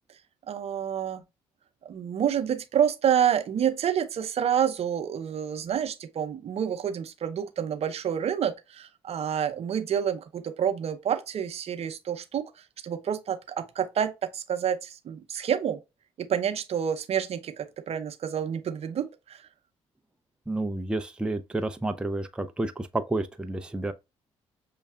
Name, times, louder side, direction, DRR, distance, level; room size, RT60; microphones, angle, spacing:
voice 1, 0.5-1.2 1.8-12.5 12.8-15.8 16.2-19.4, right 9 dB, 55° right, 0.7 m, -28 dB
voice 2, 20.5-23.9, right 2 dB, 5° right, 0.5 m, -30 dB
6.4 x 2.3 x 2.3 m
supercardioid pair, 65°, 12 cm